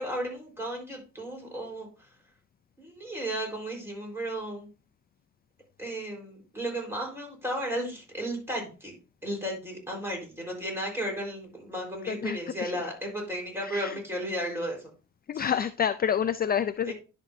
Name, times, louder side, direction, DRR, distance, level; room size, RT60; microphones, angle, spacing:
voice 1, 0.0-1.9 2.8-4.7 5.8-8.9 9.2-14.8 15.3-15.4 16.9-17.0, equal, 10° right, 4.3 m, -34 dB
voice 2, 12.1-12.9 13.6-14.0 15.3-16.9, left 8 dB, 30° left, 0.4 m, -29 dB
11.0 x 5.9 x 2.7 m
cardioid pair, 90°, 30 cm